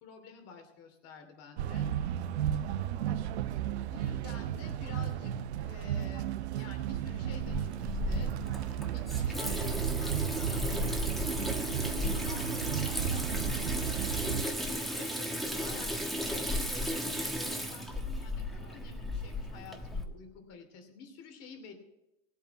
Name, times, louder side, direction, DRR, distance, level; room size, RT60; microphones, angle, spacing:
voice 1, 0.0-1.9 3.7-5.3 5.7-8.3 8.9-10.8 11.2-21.7, left 5 dB, 50° left, 6 dB, 2.9 m, -49 dB
sound 1, 1.6-14.4, right 10 dB, 90° right, 0.9 m, -34 dB
Water tap faucet / Sink (filling or washing), 7.4-20.0, equal, ahead, 1.3 m, -35 dB
17.5 x 8.4 x 5.8 m, 0.95 s
supercardioid pair, 130°, 32 cm